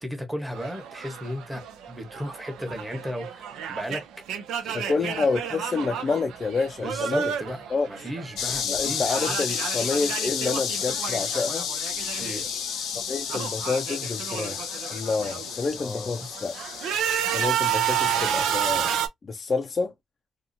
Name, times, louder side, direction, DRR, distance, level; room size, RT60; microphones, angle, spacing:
voice 1, 0.0-4.0 4.6-5.1 6.8-9.4 12.2-12.4 15.7-16.3, equal, 10° right, 1.0 m, -35 dB
sound 1, 0.5-8.6 8.8-12.6 12.9-15.5 16.0-19.1, right 9 dB, 85° right, 0.4 m, -31 dB
voice 2, 4.7-7.3 7.7-7.9 8.7-11.7 12.9-16.6 17.3-18.9 19.2-19.9, left 4 dB, 40° left, 0.4 m, -28 dB
sound 2, 8.4-18.8, left 8 dB, 85° left, 0.7 m, -32 dB
2.7 x 2.4 x 2.6 m
cardioid pair, 90°, 0 cm